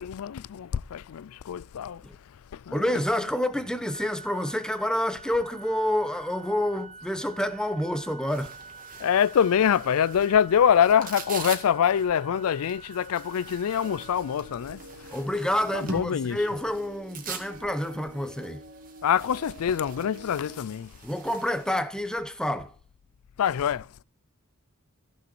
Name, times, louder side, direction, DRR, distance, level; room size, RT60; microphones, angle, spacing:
voice 1, 0.0-2.8 9.0-15.1 15.7-16.4 19.0-21.0 23.4-23.9, left 8 dB, 70° left, 0.4 m, -25 dB
voice 2, 2.7-8.5 15.1-18.6 21.0-22.7, left 1 dB, 5° left, 0.9 m, -28 dB
Organ, 3.9-14.9, right 4 dB, 25° left, 2.7 m, -47 dB
sound 1, 8.3-21.7, right 4 dB, 40° right, 2.0 m, -44 dB
sound 2, 13.8-20.6, right 2 dB, 75° right, 3.8 m, -48 dB
14.5 x 6.4 x 4.6 m
head